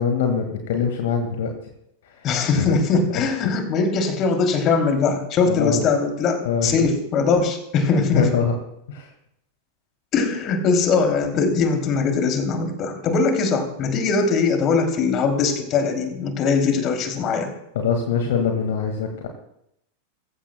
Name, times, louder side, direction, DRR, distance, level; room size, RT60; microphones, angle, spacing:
voice 1, 0.0-1.5 2.5-2.7 3.4-3.5 5.4-5.8 6.4-6.8 8.1-8.5 8.9-9.1 17.8-19.3, left 6 dB, 55° left, 4 dB, 1.8 m, -23 dB
voice 2, 2.2-8.3 10.1-17.5, left 4 dB, 35° left, 4 dB, 2.9 m, -21 dB
22.0 x 15.0 x 2.2 m, 0.78 s
figure-of-eight pair, 90°, 0 cm